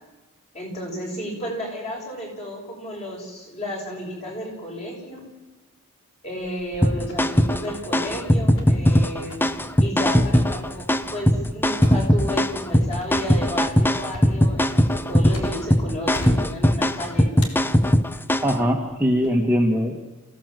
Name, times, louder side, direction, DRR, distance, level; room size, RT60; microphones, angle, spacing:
voice 1, 0.5-5.2 6.2-9.5 9.8-17.5, equal, 30° left, -1 dB, 6.7 m, -32 dB
sound 1, 6.4-7.3 7.6-8.3 8.6-8.8 9.3-15.8 16.1-17.0 17.4-18.3 18.9-19.3, left 1 dB, 70° left, 3.5 m, -39 dB
sound 2, 6.8-18.6, equal, 10° left, 0.6 m, -20 dB
voice 2, 18.4-20.0, equal, 10° right, 0 dB, 1.7 m, -21 dB
27.5 x 16.0 x 7.8 m, 1.2 s
head